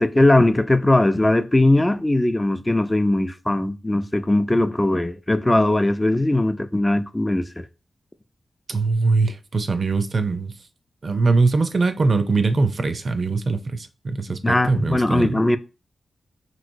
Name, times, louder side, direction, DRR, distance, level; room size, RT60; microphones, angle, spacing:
voice 1, 0.0-7.7 14.4-15.6, left 1 dB, 20° left, 0.3 m, -19 dB
voice 2, 8.7-10.5 11.0-15.3, right 3 dB, 55° right, 0.4 m, -22 dB
3.0 x 2.8 x 2.6 m
cardioid pair, 45°, 0 cm